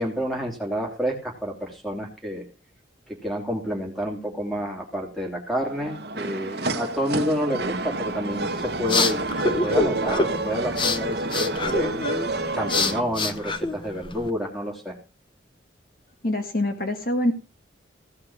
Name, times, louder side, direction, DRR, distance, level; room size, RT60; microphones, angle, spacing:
voice 1, 0.0-2.4 3.1-12.0 12.5-15.0, equal, ahead, 1 dB, 2.8 m, -29 dB
sound 1, 5.6-13.0, right 2 dB, 55° right, 1.1 m, -29 dB
sound 2, 8.4-14.3, left 3 dB, 25° left, 0.8 m, -27 dB
voice 2, 16.2-17.3, left 1 dB, 50° left, 5 dB, 1.9 m, -24 dB
16.0 x 6.0 x 6.2 m, 0.33 s
head